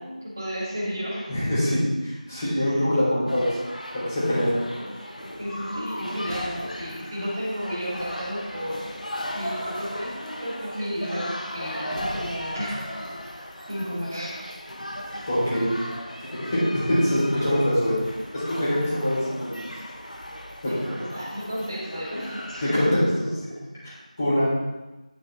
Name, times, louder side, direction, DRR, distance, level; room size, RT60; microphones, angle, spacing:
voice 1, 0.0-1.3 2.5-2.8 4.5-12.8 13.7-14.5 15.1-15.2 20.7-23.0 23.5-23.6, equal, 20° right, -7 dB, 2.7 m, -33 dB
voice 2, 1.3-3.5 3.9-4.6 15.3-15.7 16.2-18.0 18.3-19.7 20.6-20.7 22.6-23.0 23.4-23.5 23.8-23.9 24.2-24.4, left 1 dB, 20° left, -9 dB, 3.4 m, -24 dB
sound 1, 3.3-22.9, equal, 65° left, 1.3 m, -37 dB
9.9 x 6.2 x 4.6 m, 1.1 s
figure-of-eight pair, 175°, 4 cm